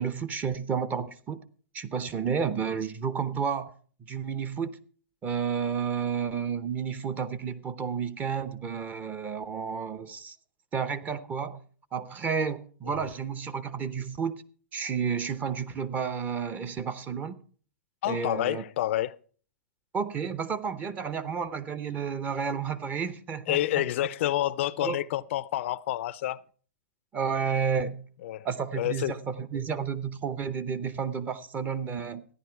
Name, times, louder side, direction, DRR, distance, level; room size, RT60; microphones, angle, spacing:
voice 1, 0.0-1.4 1.7-3.7 4.1-4.7 5.2-10.4 10.7-11.6 11.9-14.3 14.7-17.4 18.1-18.6 19.9-23.8 24.8-25.0 27.1-28.1 28.4-32.2, right 6 dB, 20° right, 0.8 m, -31 dB
voice 2, 18.0-19.2 23.5-26.4 28.2-28.5 28.8-29.2, left 14 dB, 55° left, 0.5 m, -29 dB
14.0 x 10.5 x 4.6 m
hypercardioid pair, 140°, 8 cm